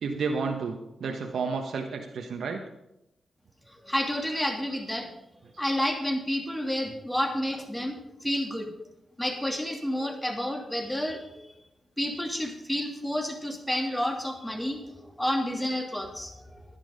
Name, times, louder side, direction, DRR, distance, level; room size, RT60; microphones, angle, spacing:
voice 1, 0.0-2.6, right 4 dB, 75° right, 3 dB, 1.1 m, -31 dB
voice 2, 3.7-5.1 5.6-8.7 9.2-11.4 12.0-16.7, equal, 10° left, 3 dB, 2.6 m, -30 dB
11.0 x 10.5 x 5.1 m, 0.86 s
cardioid pair, 55°, 0 cm